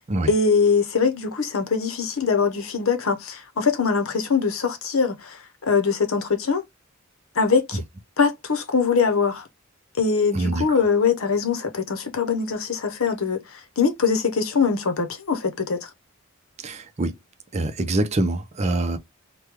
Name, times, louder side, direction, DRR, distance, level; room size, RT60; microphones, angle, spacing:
voice 1, 0.3-6.6 7.4-7.8 8.2-9.5 10.0-15.9, left 5 dB, 80° left, 0.8 m, -22 dB
voice 2, 10.3-10.8 16.6-17.1 17.5-19.0, right 2 dB, 30° right, 0.5 m, -25 dB
3.1 x 2.2 x 3.4 m
head